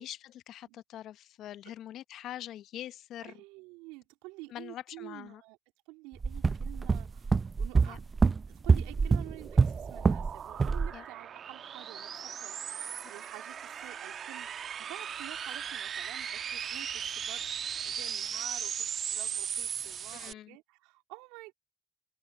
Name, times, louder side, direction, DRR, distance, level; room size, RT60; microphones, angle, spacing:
voice 1, 0.0-3.4 4.5-5.4 7.9-8.0 10.9-11.0 20.1-20.6, left 12 dB, 70° left, 0.8 m, -44 dB
voice 2, 3.2-5.6 5.9-8.0 8.5-17.5 17.8-21.5, right 23 dB, 85° right, 3.4 m, -50 dB
sound 1, 6.2-10.3 10.6-10.9, right 4 dB, 35° right, 0.5 m, -26 dB
sound 2, 8.5-20.3, right 8 dB, 55° right, 1.3 m, -38 dB
hypercardioid pair, 55°, 0 cm